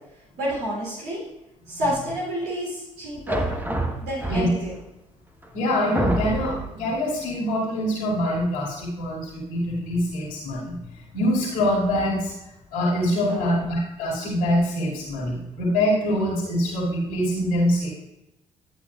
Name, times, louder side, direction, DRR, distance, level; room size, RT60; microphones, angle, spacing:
voice 1, 0.4-1.2 1.7-3.5 4.0-4.7 13.1-13.6, equal, 75° right, -5 dB, 3.2 m, -29 dB
sound 1, 3.3-4.8 5.4-5.5 6.0-6.8, right 2 dB, 10° right, 1.2 m, -27 dB
voice 2, 5.5-12.3 12.7-17.9, left 1 dB, 75° left, -7 dB, 2.5 m, -24 dB
11.5 x 8.9 x 2.4 m, 0.92 s
hypercardioid pair, 50°, 16 cm